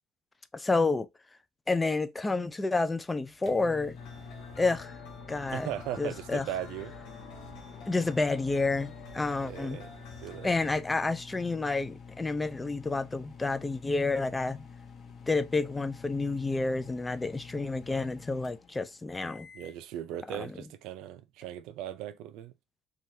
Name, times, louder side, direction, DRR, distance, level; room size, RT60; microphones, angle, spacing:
voice 1, 0.5-1.1 1.7-4.0 4.6-4.9 5.3-5.7 6.0-6.5 7.9-9.8 10.4-14.7 15.3-19.5 20.3-20.6, left 3 dB, 15° left, 0.4 m, -29 dB
sound 1, 3.0-19.8, left 5 dB, 45° left, 0.8 m, -48 dB
sound 2, 3.9-10.8, left 3 dB, 85° left, 1.0 m, -48 dB
voice 2, 5.5-6.9 9.4-9.9 10.2-10.6 19.5-22.5, right 11 dB, 80° right, 0.4 m, -38 dB
3.2 x 2.3 x 2.6 m
cardioid pair, 105°, 0 cm